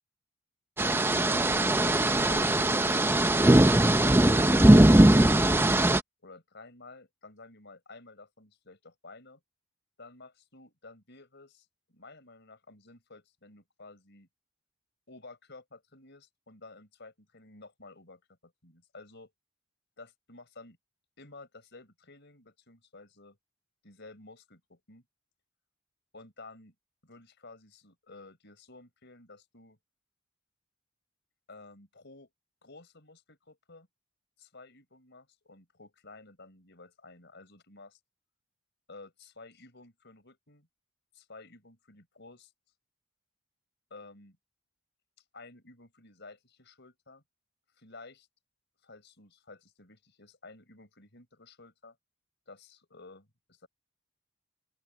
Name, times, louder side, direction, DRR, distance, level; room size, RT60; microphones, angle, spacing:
sound 1, 0.8-6.0, right 1 dB, 10° right, 0.6 m, -20 dB
voice 1, 1.3-5.4 6.2-9.4 10.0-14.3 15.1-19.3 20.0-20.8 21.2-23.4 23.8-25.0 26.1-26.7 27.0-29.8 31.5-32.3 32.6-33.9 34.4-38.0 38.9-40.7 41.1-42.5 43.9-44.4 45.3-47.2 47.8-48.3 48.8-52.0 52.5-53.7, left 3 dB, 60° left, 5.5 m, -52 dB
open air
head